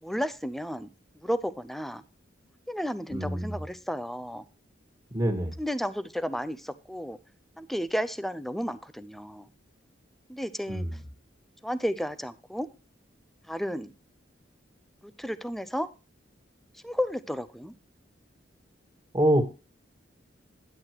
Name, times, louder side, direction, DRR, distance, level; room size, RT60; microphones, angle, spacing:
voice 1, 0.0-0.9 1.1-2.0 2.7-4.5 5.6-7.2 7.6-9.5 10.3-11.0 11.6-12.7 13.5-13.9 15.0-15.9 16.7-17.7, equal, ahead, 13 dB, 0.6 m, -32 dB
voice 2, 3.1-3.6 5.1-5.5 10.7-10.9 19.1-19.4, right 1 dB, 20° right, 4 dB, 1.7 m, -25 dB
11.0 x 8.2 x 2.9 m, 0.30 s
head